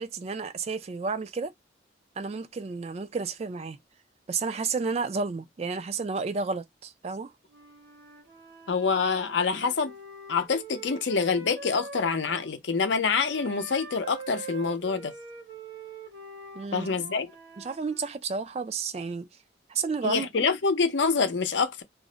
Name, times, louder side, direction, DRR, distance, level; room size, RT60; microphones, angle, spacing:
voice 1, 0.0-1.5 2.2-3.8 4.3-7.3 16.5-16.9 17.6-19.3 19.7-20.3, right 4 dB, 35° right, 0.3 m, -31 dB
Wind instrument woodwind instrument, 7.5-12.5 13.2-18.2, right 3 dB, 65° right, 1.0 m, -44 dB
voice 2, 8.7-9.9 10.3-15.1 16.7-17.3 20.0-21.8, left 5 dB, 75° left, 0.6 m, -26 dB
2.5 x 2.1 x 3.7 m
head